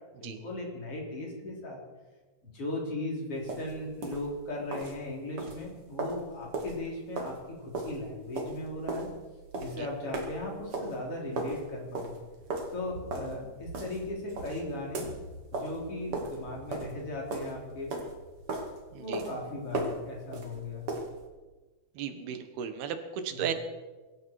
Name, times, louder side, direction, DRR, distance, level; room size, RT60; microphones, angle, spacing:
voice 1, 0.2-1.8 2.4-9.1 9.6-12.1 12.7-15.1 15.5-17.9 18.9-20.9 23.3-23.5, left 1 dB, 40° left, -2 dB, 4.6 m, -37 dB
sound 1, 3.4-21.3, right 2 dB, 40° right, 2.8 m, -38 dB
voice 2, 22.0-23.5, right 8 dB, 85° right, 8 dB, 3.2 m, -35 dB
23.5 x 13.0 x 4.7 m, 1.3 s
omnidirectional pair, 4.3 m